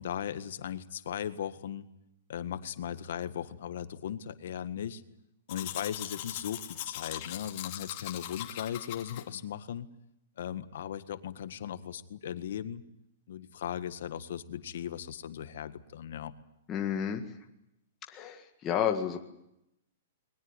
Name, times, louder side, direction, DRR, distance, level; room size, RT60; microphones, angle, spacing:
voice 1, 0.0-1.9 2.3-5.0 5.5-9.9 10.4-12.8 13.3-16.3, left 9 dB, 60° left, 11 dB, 1.7 m, -37 dB
Domestic sounds home sounds, 5.5-9.2, left 13 dB, 35° left, 2.7 m, -40 dB
voice 2, 16.7-17.2 18.1-19.2, left 8 dB, 15° left, 2 dB, 1.8 m, -31 dB
21.5 x 20.5 x 9.8 m, 0.81 s
hypercardioid pair, 175°, 0 cm